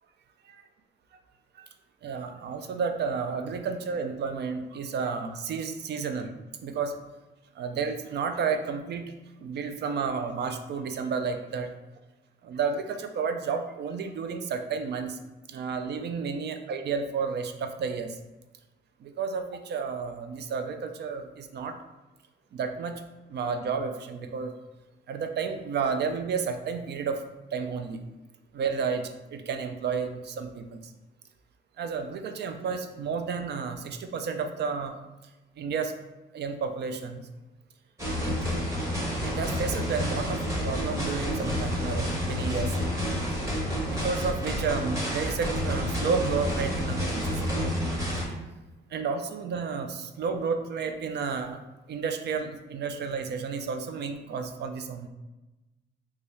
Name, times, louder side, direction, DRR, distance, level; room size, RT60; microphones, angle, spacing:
voice 1, 2.0-6.3 6.6-7.0 7.6-9.1 9.4-11.7 12.4-15.2 15.5-18.2 19.0-21.8 22.5-23.0 23.3-24.5 25.1-27.2 27.5-28.0 28.5-30.9 31.8-34.9 35.6-35.9 36.3-37.3 38.2-38.4 39.2-42.8 43.9-47.7 48.9-51.6 51.9-55.1, right 5 dB, 60° right, 7 dB, 0.4 m, -31 dB
sound 1, 38.0-48.2, equal, 15° right, 1.2 m, -29 dB
3.2 x 2.3 x 4.0 m, 1.1 s
cardioid pair, 90°, 20 cm